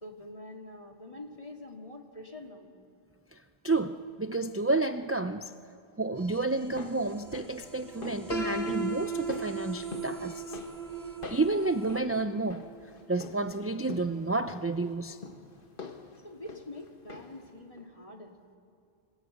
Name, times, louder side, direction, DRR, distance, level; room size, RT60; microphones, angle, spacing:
voice 1, 0.0-2.7 16.2-18.4, left 1 dB, 35° left, 2 dB, 2.2 m, -45 dB
voice 2, 3.6-5.5 6.0-10.6 11.3-12.6 13.1-15.2, right 2 dB, 20° right, 9 dB, 0.4 m, -30 dB
sound 1, 6.1-12.0, right 6 dB, 45° right, 1.3 m, -47 dB
sound 2, 6.5-17.5 17.8-17.9, left 4 dB, 60° left, 1.7 m, -47 dB
Piano, 8.3-14.2, right 3 dB, 85° left, 2.5 m, -38 dB
27.0 x 19.5 x 8.0 m, 2.4 s
omnidirectional pair, 1.1 m